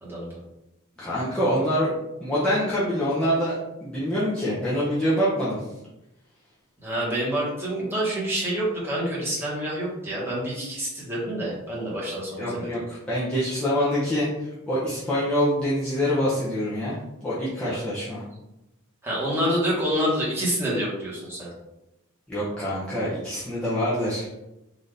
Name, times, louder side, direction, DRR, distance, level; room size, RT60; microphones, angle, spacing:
voice 1, 0.0-0.4 6.8-12.7 17.6-17.8 19.0-21.5, equal, 10° right, -7 dB, 1.3 m, -27 dB
voice 2, 1.0-5.6 12.4-18.2 22.3-24.3, equal, 5° left, -10 dB, 0.7 m, -25 dB
4.0 x 2.7 x 3.3 m, 0.93 s
head